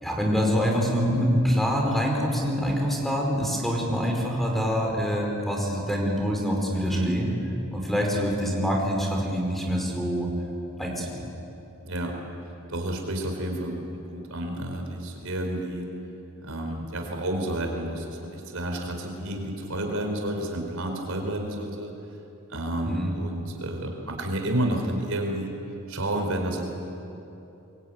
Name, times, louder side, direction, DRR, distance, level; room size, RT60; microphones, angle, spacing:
voice 1, 0.0-7.3 7.7-10.3 10.8-11.1 22.9-23.1, equal, ahead, 0 dB, 4.9 m, -25 dB
voice 2, 6.7-7.2 11.8-12.1 12.7-15.9 16.4-21.9 22.5-25.5 25.9-26.7, right 1 dB, 75° right, 2 dB, 4.6 m, -30 dB
25.5 x 22.5 x 9.4 m, 2.9 s
head